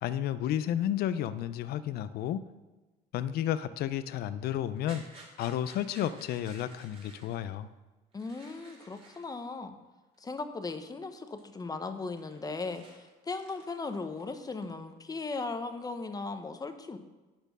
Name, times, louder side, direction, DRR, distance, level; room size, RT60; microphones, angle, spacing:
voice 1, 0.0-2.4 3.1-7.7, left 11 dB, 65° left, 13 dB, 0.5 m, -32 dB
hazelnuts in a cylindric plastic box, 4.7-7.4 8.1-9.4 10.1-10.2 10.7-11.1 11.4-11.5 11.8-14.9 15.2-15.9, right 2 dB, 35° right, 2.7 m, -55 dB
voice 2, 8.1-9.7 10.2-17.0, left 3 dB, 20° left, 8 dB, 0.8 m, -37 dB
10.5 x 4.4 x 6.1 m, 1.2 s
cardioid pair, 110°, 17 cm